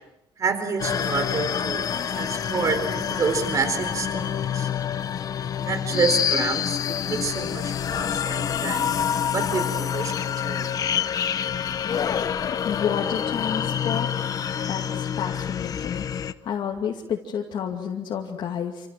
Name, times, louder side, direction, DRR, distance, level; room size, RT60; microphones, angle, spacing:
voice 1, 0.4-4.7 5.4-6.8 7.0-8.9 9.3-10.7, right 5 dB, 40° right, 9 dB, 4.1 m, -28 dB
sound 1, 0.8-16.3, left 8 dB, 40° left, 1.0 m, -27 dB
voice 2, 12.5-14.1 14.7-16.0 16.4-18.9, left 8 dB, 60° left, -1 dB, 2.6 m, -30 dB
28.0 x 27.5 x 7.6 m, 0.88 s
cardioid pair, 170°, 9 cm